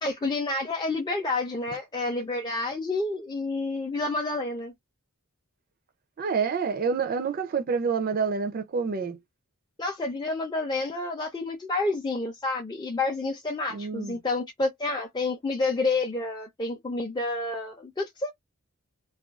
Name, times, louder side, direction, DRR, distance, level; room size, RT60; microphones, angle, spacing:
voice 1, 0.0-4.7 9.8-18.3, left 2 dB, 20° left, 0.4 m, -29 dB
voice 2, 6.2-9.2 13.7-14.2, right 5 dB, 40° right, 0.4 m, -28 dB
2.4 x 2.2 x 2.3 m
head